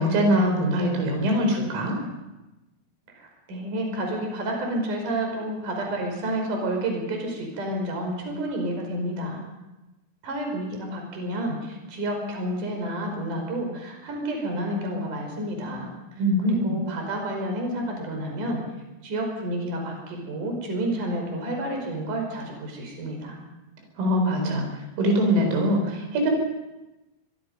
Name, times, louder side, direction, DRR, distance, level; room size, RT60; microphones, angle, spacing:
voice 1, 0.0-2.0 16.2-16.8 24.0-26.3, equal, 80° right, 3 dB, 7.2 m, -23 dB
voice 2, 3.2-9.4 10.2-15.9 16.4-18.6 19.0-23.4, right 1 dB, 40° right, 2 dB, 6.3 m, -30 dB
24.0 x 23.0 x 5.5 m, 1.0 s
omnidirectional pair, 6.0 m